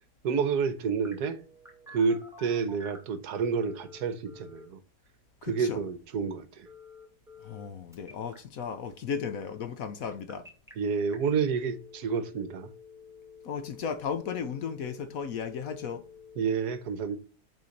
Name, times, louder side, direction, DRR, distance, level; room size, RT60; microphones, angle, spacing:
voice 1, 0.2-1.4 1.9-4.8 5.4-6.7 10.8-12.7 16.4-17.2, right 5 dB, 70° right, 1.2 m, -29 dB
Telephone, 1.0-3.1 3.6-4.7 6.7-7.7 7.9-8.4 10.0-10.7 11.1-11.2 11.6-16.6, left 4 dB, ahead, 2.0 m, -51 dB
voice 2, 5.4-5.8 7.4-10.5 13.4-16.1, left 6 dB, 65° left, 1.0 m, -35 dB
6.7 x 4.3 x 6.3 m
omnidirectional pair, 1.8 m